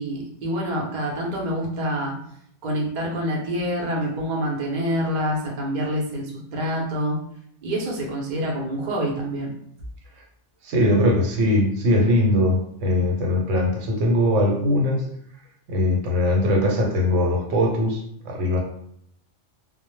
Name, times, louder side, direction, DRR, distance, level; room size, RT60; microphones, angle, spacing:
voice 1, 0.0-2.1 2.6-7.2 7.6-9.5, equal, 50° right, -2 dB, 0.6 m, -26 dB
voice 2, 10.6-15.1 15.7-18.6, left 1 dB, 80° right, 0 dB, 1.0 m, -21 dB
2.1 x 2.0 x 3.0 m, 0.68 s
omnidirectional pair, 1.3 m